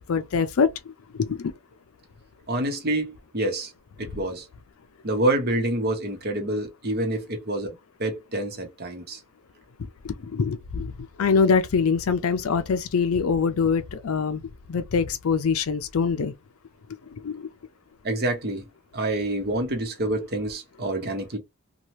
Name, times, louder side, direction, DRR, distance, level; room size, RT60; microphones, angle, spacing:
voice 1, 0.1-0.7 1.1-1.5 10.0-10.9 11.2-14.4 14.7-16.3 17.2-17.5, left 5 dB, 75° left, 0.4 m, -23 dB
voice 2, 2.5-3.7 4.0-4.5 5.0-9.2 18.0-18.6 18.9-21.4, right 1 dB, 45° right, 0.9 m, -27 dB
2.8 x 2.3 x 3.0 m
head